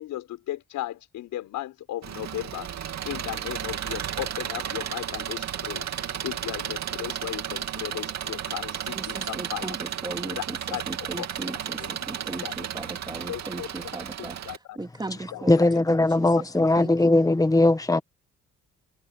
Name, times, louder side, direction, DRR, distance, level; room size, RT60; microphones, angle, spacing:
voice 1, 0.0-9.8 10.3-10.4 10.7-10.8 11.2-11.3 11.8-11.9 12.4-12.5 13.3-13.9 14.2-14.8 15.3-15.4 15.7-15.8 16.3-16.4, left 14 dB, 85° left, 5.6 m, -36 dB
Engine, 2.0-14.6, right 9 dB, 60° right, 2.7 m, -33 dB
voice 2, 8.9-10.6 10.9-14.4 14.8-17.3, right 2 dB, 15° right, 3.0 m, -37 dB
voice 3, 15.5-18.0, left 2 dB, 10° left, 1.6 m, -20 dB
cardioid pair, 90°, 30 cm